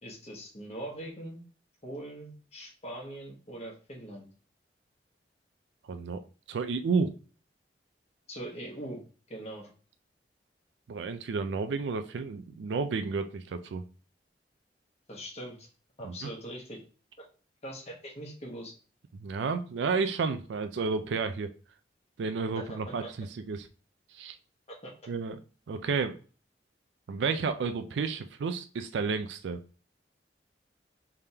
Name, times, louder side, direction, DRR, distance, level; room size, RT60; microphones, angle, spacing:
voice 1, 0.0-1.4 1.8-4.3 8.3-9.0 9.3-9.7 15.1-15.7 16.0-16.8 17.6-18.7 22.5-23.1 24.7-24.9, right 1 dB, 35° left, -1 dB, 1.2 m, -41 dB
voice 2, 5.9-6.2 6.5-7.1 10.9-13.8 16.0-16.3 19.1-21.5 22.2-23.7 24.1-24.4 25.1-25.4 25.7-26.2 27.1-29.6, right 4 dB, 85° right, 9 dB, 0.4 m, -31 dB
3.5 x 3.4 x 2.8 m, 0.37 s
head